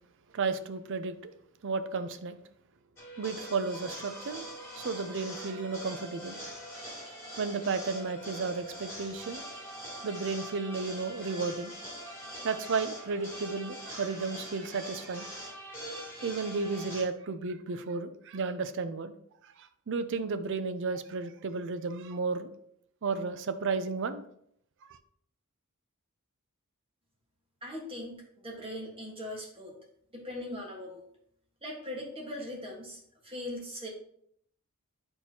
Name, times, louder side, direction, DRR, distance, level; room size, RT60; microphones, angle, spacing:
voice 1, 0.3-1.3 1.6-2.4 3.2-4.5 4.8-6.4 7.4-9.4 10.0-11.7 12.4-15.4 16.2-19.1 19.6-22.5 23.0-24.2 24.9-25.0, right 4 dB, 55° right, 11 dB, 0.5 m, -33 dB
sound 1, 3.0-17.0, equal, 10° left, 2.4 m, -43 dB
voice 2, 27.6-29.7 30.1-31.0 31.6-33.9, left 1 dB, 25° right, -1 dB, 1.5 m, -40 dB
8.4 x 4.4 x 2.9 m, 0.69 s
head